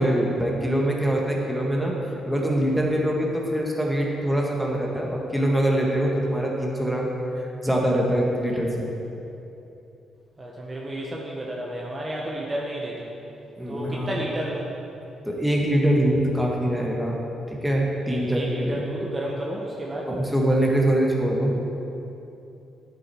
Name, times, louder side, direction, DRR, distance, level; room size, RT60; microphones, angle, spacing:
voice 1, 0.0-1.9 2.3-7.1 7.4-8.9 13.6-14.2 15.3-17.2 17.5-18.9 20.1-21.5, right 1 dB, 5° right, -2 dB, 2.0 m, -23 dB
voice 2, 10.4-13.2 13.7-14.7 18.1-20.1, right 1 dB, 30° right, -3 dB, 1.4 m, -32 dB
10.5 x 8.3 x 4.7 m, 2.9 s
cardioid pair, 75°, 0 cm